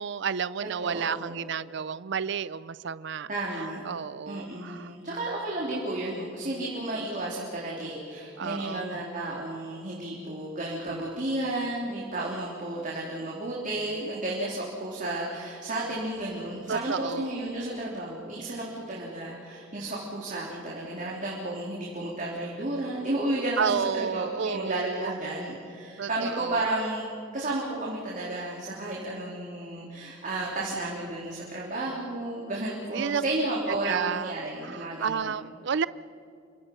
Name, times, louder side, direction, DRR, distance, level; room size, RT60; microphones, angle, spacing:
voice 1, 0.0-3.3 3.6-4.9 8.4-9.0 16.7-17.3 23.6-25.1 26.0-26.6 32.9-33.2 33.8-34.3 34.6-35.9, right 7 dB, 60° right, 17 dB, 0.5 m, -31 dB
voice 2, 0.8-1.4 3.3-3.8 4.3-35.3, right 2 dB, 40° right, -4 dB, 3.7 m, -32 dB
28.5 x 25.0 x 5.6 m, 2.6 s
head